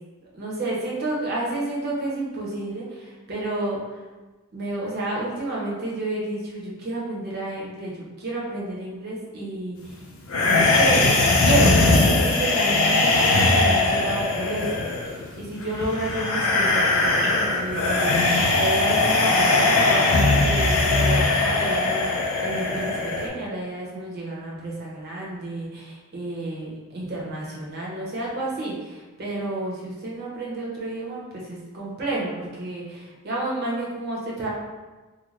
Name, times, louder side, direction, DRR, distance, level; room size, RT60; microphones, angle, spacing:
voice 1, 0.3-4.0 4.5-10.0 10.4-11.1 11.4-34.5, right 2 dB, 45° right, -4 dB, 0.8 m, -30 dB
sound 1, 10.3-23.3, left 2 dB, 70° left, 0.5 m, -20 dB
3.8 x 2.2 x 3.1 m, 1.2 s
head